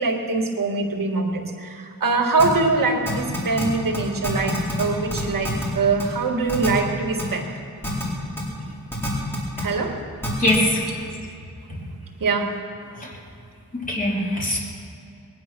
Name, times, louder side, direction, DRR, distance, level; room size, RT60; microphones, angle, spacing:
voice 1, 0.0-7.5 9.6-10.0 11.7-12.5 12.9-13.0, right 3 dB, 75° right, 2 dB, 1.9 m, -23 dB
sound 1, 2.4-2.5 3.1-3.6 3.9-4.0 4.2-4.8 5.1-5.6 6.0-6.1 6.5-6.7 7.2-7.3 7.8-8.0 8.4-8.5 8.9-9.6 10.2-10.6, equal, 5° left, 4.2 m, -27 dB
voice 2, 10.4-10.8 13.8-14.6, left 1 dB, 25° left, -4 dB, 3.5 m, -21 dB
20.5 x 10.0 x 6.1 m, 2.5 s
wide cardioid pair, 140°, 34 cm